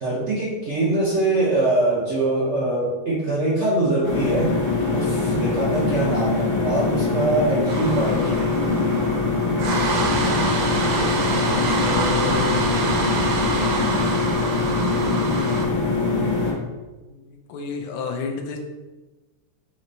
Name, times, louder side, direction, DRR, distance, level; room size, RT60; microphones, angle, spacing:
voice 1, 0.0-4.6 4.9-8.5, right 2 dB, 85° right, -6 dB, 0.6 m, -23 dB
sound 1, 4.0-16.5, left 3 dB, 55° left, 0.6 m, -23 dB
sound 2, 7.7-15.6, right 3 dB, 70° right, 1.3 m, -26 dB
voice 2, 11.8-12.6 17.0-18.6, left 4 dB, 75° left, 4 dB, 1.3 m, -30 dB
4.3 x 3.2 x 3.9 m, 1.2 s
omnidirectional pair, 2.4 m